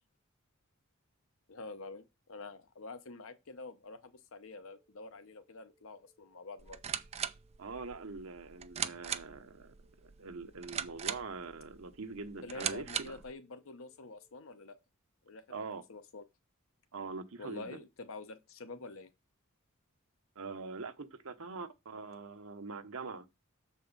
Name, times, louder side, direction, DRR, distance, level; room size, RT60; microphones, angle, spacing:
voice 1, 1.5-6.8 12.4-14.8 15.2-15.4 15.9-16.2 17.4-19.1, left 3 dB, 70° left, 0.8 m, -47 dB
sound 1, 4.5-14.5, right 2 dB, 10° right, 1.1 m, -73 dB
sound 2, 6.6-13.3, right 8 dB, 30° right, 0.4 m, -40 dB
voice 2, 7.6-13.2 15.5-15.8 16.9-17.8 20.3-23.3, right 4 dB, 90° right, 1.0 m, -43 dB
7.0 x 4.6 x 5.3 m
head